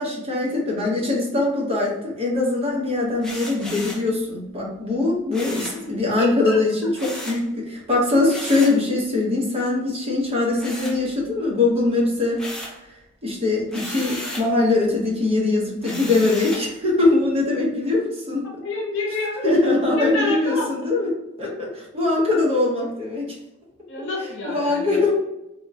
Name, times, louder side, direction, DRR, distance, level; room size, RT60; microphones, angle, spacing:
voice 1, 0.0-12.4 13.2-18.4 19.4-23.3 24.2-25.1, left 2 dB, 25° right, -4 dB, 0.8 m, -22 dB
sound 1, 3.2-4.1 5.3-5.8 7.0-7.4 8.3-8.8 10.6-11.4 11.8-12.8 13.7-14.5 15.8-16.7, left 1 dB, 5° left, 0.3 m, -34 dB
voice 2, 6.2-6.6 18.6-19.5 19.9-20.7 23.9-25.0, left 2 dB, 55° left, -2 dB, 0.6 m, -28 dB
3.5 x 2.1 x 2.7 m, 0.93 s
head